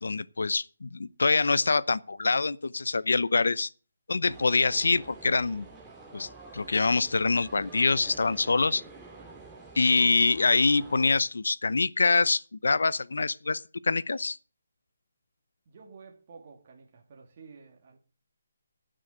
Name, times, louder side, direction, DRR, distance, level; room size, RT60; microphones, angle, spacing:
voice 1, 0.0-3.7 4.1-5.7 6.1-8.8 9.8-14.4, left 3 dB, 80° left, 0.7 m, -25 dB
sound 1, 4.3-11.2, right 3 dB, 10° right, 2.2 m, -48 dB
voice 2, 15.7-18.0, right 5 dB, 35° right, 2.2 m, -51 dB
14.0 x 6.4 x 7.9 m
hypercardioid pair, 170°, 0 cm